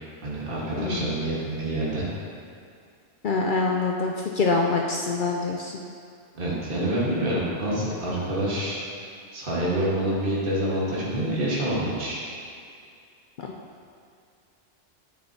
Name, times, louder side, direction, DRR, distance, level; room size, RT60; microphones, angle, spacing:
voice 1, 0.2-2.0 6.4-8.8 9.3-12.2, right 1 dB, 45° right, -6 dB, 1.6 m, -27 dB
voice 2, 0.8-1.1 3.2-5.8, left 3 dB, 60° left, 0 dB, 0.5 m, -25 dB
8.7 x 6.9 x 2.8 m, 2.4 s
omnidirectional pair, 1.3 m